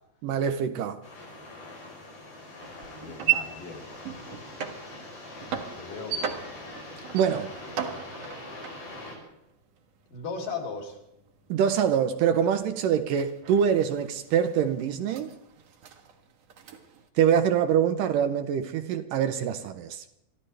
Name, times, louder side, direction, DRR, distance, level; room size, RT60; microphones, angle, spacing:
voice 1, 0.2-1.0 7.1-7.5 11.5-15.3 17.2-20.0, right 8 dB, 75° right, 2.3 m, -24 dB
sound 1, 1.0-9.2, left 2 dB, 80° left, 7.6 m, -43 dB
sound 2, 2.6-10.3 10.6-17.1, right 10 dB, 60° right, 2.0 m, -36 dB
voice 2, 2.7-3.8 5.8-6.3 10.1-11.0, left 4 dB, 65° left, 4.5 m, -37 dB
26.0 x 13.5 x 3.3 m
omnidirectional pair, 4.1 m